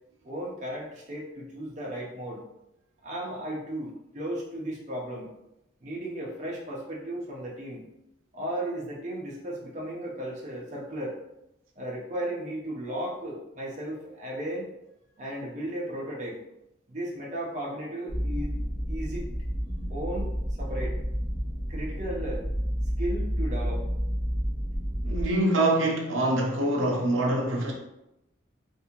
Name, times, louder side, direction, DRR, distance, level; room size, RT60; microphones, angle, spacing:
voice 1, 0.2-2.4 3.0-5.3 5.8-7.8 8.3-11.2 11.8-14.7 15.2-16.4 16.9-18.6 18.9-19.2 19.9-20.3 20.6-21.0 21.7-22.4 23.0-23.9, right 1 dB, 40° right, -4 dB, 0.7 m, -35 dB
sound 1, 18.1-25.3, equal, 50° left, 1.2 m, -30 dB
voice 2, 25.0-27.7, right 1 dB, 90° right, 0 dB, 0.7 m, -25 dB
3.6 x 2.7 x 2.9 m, 0.88 s
head